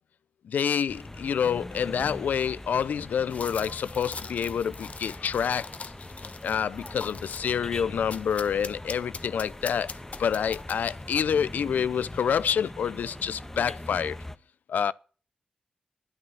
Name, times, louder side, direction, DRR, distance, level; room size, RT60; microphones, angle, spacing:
voice 1, 0.5-5.7 6.4-9.9 10.2-14.2 14.7-14.9, left 7 dB, 90° left, 0.5 m, -27 dB
sound 1, 0.9-14.4, left 1 dB, 15° left, 1.2 m, -42 dB
sound 2, 3.3-7.5 8.1-11.0, left 5 dB, 55° left, 0.9 m, -42 dB
11.5 x 9.7 x 5.7 m
cardioid pair, 70°, 3 cm